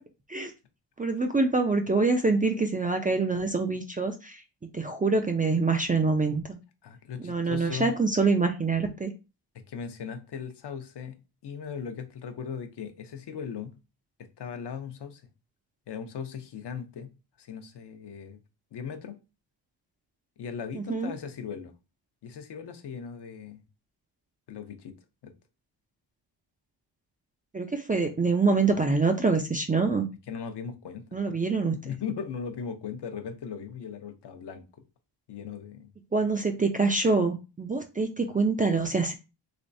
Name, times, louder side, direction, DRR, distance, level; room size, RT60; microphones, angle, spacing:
voice 1, 1.0-4.4 4.7-6.6 7.2-9.1 20.7-21.1 27.5-30.1 31.1-31.7 36.1-39.1, right 3 dB, 20° right, 0.3 m, -25 dB
voice 2, 6.8-8.0 9.7-11.2 11.4-13.8 14.2-15.2 15.9-17.1 17.4-18.4 18.7-19.2 20.4-21.7 22.2-23.6 24.5-25.0 25.2-25.3 30.3-31.4 31.7-34.6 35.3-35.9, left 7 dB, 65° left, 0.6 m, -38 dB
3.3 x 3.1 x 2.6 m
wide cardioid pair, 115°, 44 cm